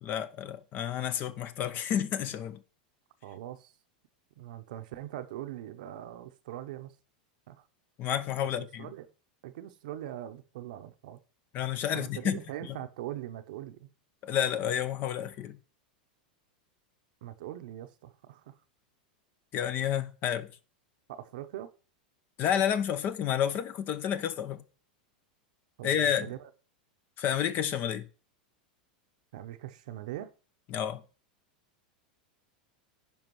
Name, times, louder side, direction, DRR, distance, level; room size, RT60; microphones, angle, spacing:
voice 1, 0.0-2.6 8.0-8.9 11.5-12.4 12.7-12.8 14.2-15.6 19.5-20.5 22.4-24.6 25.8-26.3 27.2-28.1 30.7-31.0, left 9 dB, 45° left, 0.8 m, -30 dB
voice 2, 3.2-3.7 4.4-6.9 7.5-7.6 8.6-9.1 9.4-11.2 11.9-13.9 17.2-18.5 21.1-21.7 25.8-26.5 29.3-30.3, right 13 dB, 65° right, 0.8 m, -41 dB
14.5 x 5.2 x 3.1 m
hypercardioid pair, 100°, 5 cm